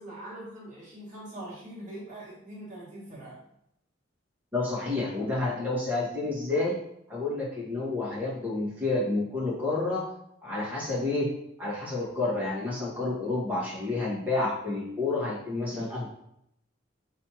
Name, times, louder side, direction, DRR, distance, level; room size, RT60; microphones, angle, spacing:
voice 1, 0.0-3.4, right 1 dB, 40° right, -9 dB, 1.6 m, -42 dB
voice 2, 4.5-6.8 7.1-10.1 10.4-11.3 11.6-16.1, left 2 dB, 10° right, -8 dB, 1.4 m, -29 dB
4.3 x 3.3 x 2.9 m, 0.76 s
head